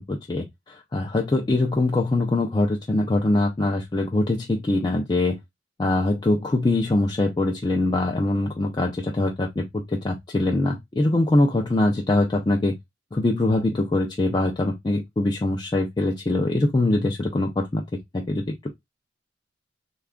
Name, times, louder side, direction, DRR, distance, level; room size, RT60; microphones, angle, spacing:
voice 1, 0.0-5.4 5.8-12.8 13.1-18.7, left 2 dB, 25° left, 0.4 m, -23 dB
3.3 x 2.3 x 3.5 m
head